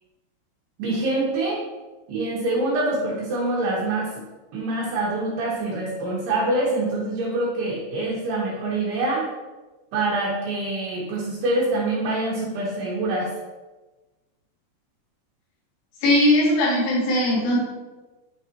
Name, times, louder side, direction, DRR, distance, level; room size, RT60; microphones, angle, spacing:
voice 1, 0.8-1.6 2.1-4.1 4.5-9.3 9.9-13.3, right 2 dB, 70° right, -5 dB, 2.7 m, -25 dB
voice 2, 16.0-17.6, left 1 dB, 90° left, -8 dB, 5.3 m, -19 dB
9.7 x 4.6 x 3.0 m, 1.2 s
omnidirectional pair, 5.9 m